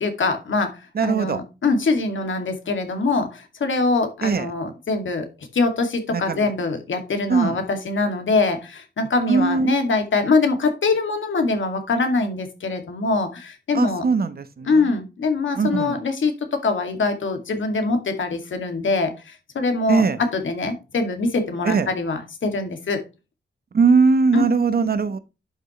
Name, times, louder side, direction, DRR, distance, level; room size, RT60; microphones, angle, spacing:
voice 1, 0.0-5.3 5.5-14.0 14.7-20.0 20.3-23.0 24.3-24.4, left 3 dB, 75° left, 2.3 m, -23 dB
voice 2, 0.9-1.4 4.2-4.5 6.1-6.5 7.3-7.6 9.3-9.7 13.7-14.9 15.5-16.0 19.9-20.2 21.6-21.9 23.7-25.2, right 4 dB, 50° right, 0.9 m, -20 dB
11.0 x 6.2 x 3.1 m
wide cardioid pair, 165°, 20 cm